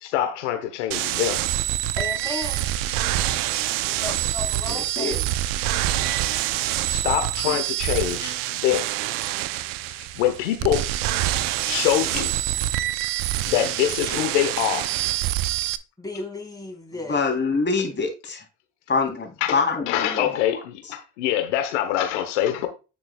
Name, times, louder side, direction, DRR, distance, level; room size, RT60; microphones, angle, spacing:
voice 1, 0.0-1.4 6.9-8.9 10.0-10.9 11.6-12.3 13.5-14.9 19.4-19.6 19.9-22.7, left 11 dB, 90° left, 1.1 m, -24 dB
sound 1, 0.9-15.8, right 14 dB, 70° right, 0.8 m, -26 dB
voice 2, 2.0-2.7 3.8-5.3 6.0-6.1 16.0-17.4, left 2 dB, 10° left, 4.2 m, -35 dB
voice 3, 4.7-5.1 7.5-7.6 17.1-18.4 18.9-20.4, left 4 dB, 30° left, 3.5 m, -25 dB
9.4 x 6.8 x 2.3 m
supercardioid pair, 70°, 35 cm